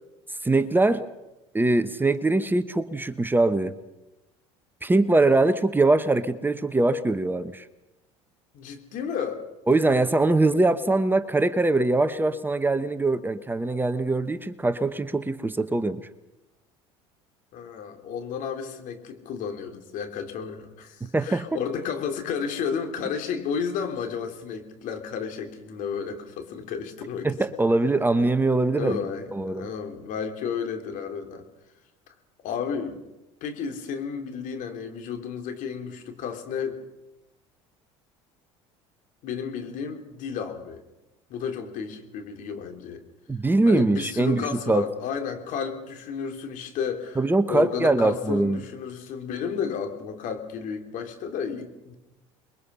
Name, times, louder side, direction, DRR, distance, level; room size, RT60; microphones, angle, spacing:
voice 1, 0.4-1.0 1.5-3.7 4.8-7.7 9.7-16.0 21.1-21.5 27.2-29.0 29.3-29.7 43.3-44.8 47.2-48.6, right 2 dB, 15° right, 11 dB, 1.1 m, -22 dB
voice 2, 8.5-9.4 17.5-27.3 28.8-31.4 32.4-33.0 33.4-36.8 39.2-40.8 41.3-43.0 43.7-47.2 47.5-51.9, left 6 dB, 60° left, 5 dB, 3.4 m, -32 dB
28.5 x 22.0 x 5.7 m, 0.99 s
hypercardioid pair, 75°, 15 cm